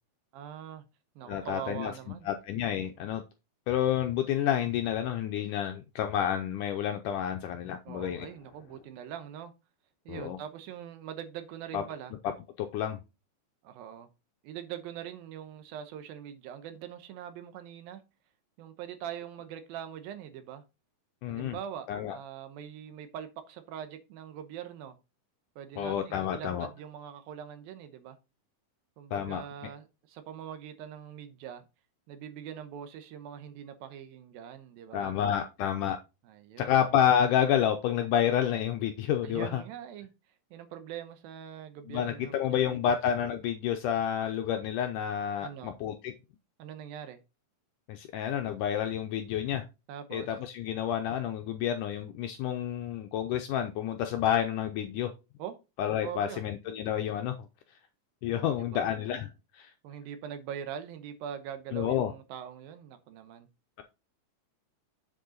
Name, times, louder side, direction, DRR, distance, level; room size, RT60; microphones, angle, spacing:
voice 1, 0.3-0.8 1.2-2.3 7.9-9.5 10.1-12.1 13.6-14.1 14.4-18.0 18.6-20.6 21.3-25.0 25.6-28.2 29.0-31.6 32.1-35.2 36.2-36.7 39.2-40.1 40.5-42.9 45.4-45.8 46.6-47.2 49.9-50.3 55.4-55.6 56.0-56.4 58.4-58.9 59.8-63.5, right 9 dB, 80° right, 2.6 m, -42 dB
voice 2, 1.3-1.9 2.3-3.2 3.7-8.3 10.1-10.4 11.7-11.8 12.6-13.0 21.2-21.6 21.9-22.2 25.8-26.7 29.1-29.4 34.9-36.0 36.6-39.6 41.9-46.1 47.9-49.6 50.1-55.1 55.8-57.3 58.2-59.3 59.5-59.7 61.7-62.1, left 9 dB, 80° left, 1.9 m, -29 dB
7.7 x 6.6 x 3.8 m
omnidirectional pair, 4.3 m